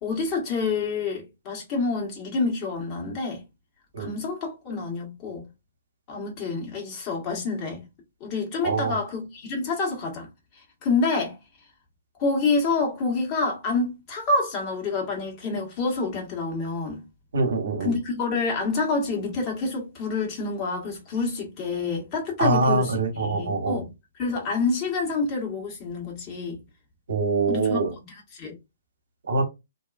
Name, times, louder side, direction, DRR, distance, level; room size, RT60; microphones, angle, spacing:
voice 1, 0.0-3.4 4.0-5.5 6.1-7.8 8.2-10.3 10.8-11.3 12.2-17.0 17.8-23.9 24.2-26.6 27.5-27.8 28.1-28.5, left 3 dB, 35° left, 1.4 m, -27 dB
voice 2, 8.6-9.0 17.3-17.9 22.4-23.8 27.1-27.9 29.3-29.4, right 3 dB, 70° right, 0.9 m, -24 dB
2.7 x 2.3 x 2.4 m
figure-of-eight pair, 125°, 0 cm